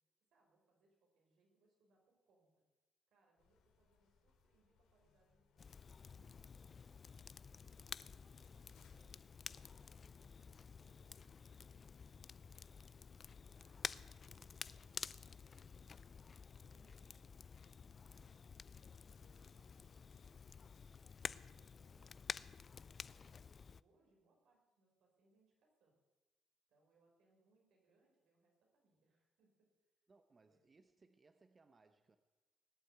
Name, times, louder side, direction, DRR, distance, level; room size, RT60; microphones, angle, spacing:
voice 1, 0.3-2.6 3.1-6.9 7.5-11.7 12.0-12.6 13.3-20.3 21.1-26.0 26.7-29.7 30.4-30.6, right 2 dB, 80° right, 0 dB, 5.6 m, -77 dB
sound 1, 3.4-21.0, left 5 dB, 90° left, 2.5 m, -76 dB
Crackle, 5.6-23.8, left 5 dB, 40° left, 0.4 m, -51 dB
voice 2, 30.1-32.2, right 3 dB, 30° right, 9 dB, 0.9 m, -69 dB
19.5 x 7.9 x 9.4 m, 1.2 s
cardioid pair, 90°, 0 cm